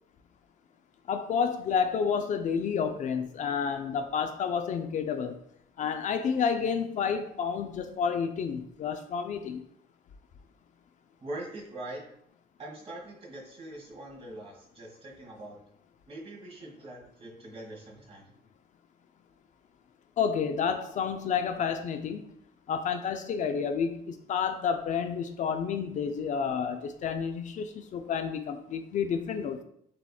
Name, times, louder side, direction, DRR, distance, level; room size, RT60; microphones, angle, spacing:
voice 1, 1.1-5.3 5.8-9.6 20.2-22.2 22.7-29.6, left 6 dB, 50° left, 7 dB, 0.4 m, -30 dB
voice 2, 11.2-12.0 12.6-15.6 16.1-18.3, right 1 dB, 35° right, -2 dB, 1.5 m, -43 dB
7.4 x 2.9 x 2.3 m, 0.71 s
cardioid pair, 110°, 17 cm